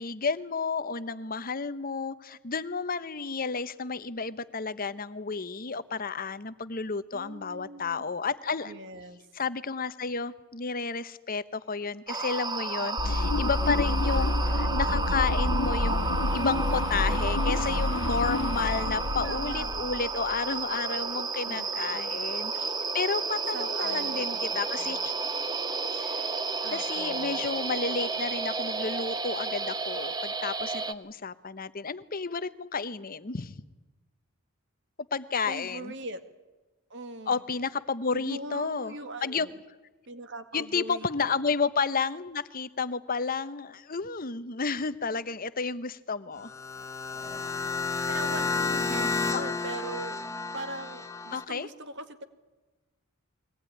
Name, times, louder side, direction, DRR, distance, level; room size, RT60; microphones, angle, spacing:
voice 1, 0.0-8.7 9.3-25.1 25.9-26.3 26.7-33.6 35.1-35.9 37.3-39.0 39.2-39.5 40.5-46.5 49.3-49.5 51.3-51.7, left 4 dB, 40° left, 14 dB, 0.9 m, -32 dB
voice 2, 7.1-8.0 8.6-9.2 12.8-13.3 14.1-14.5 18.0-18.1 19.2-19.8 21.5-22.2 23.5-25.0 26.6-27.4 35.5-36.2 36.9-37.4 38.1-39.6 40.1-41.3 48.1-50.2 50.5-52.2, right 2 dB, 55° right, 9 dB, 2.0 m, -41 dB
sound 1, 12.1-30.9, right 4 dB, 20° right, 1.0 m, -32 dB
sound 2, 13.0-20.4, left 2 dB, 80° left, 1.0 m, -28 dB
sound 3, 46.4-51.4, left 4 dB, 15° left, 1.1 m, -31 dB
23.0 x 18.5 x 9.9 m, 1.2 s
head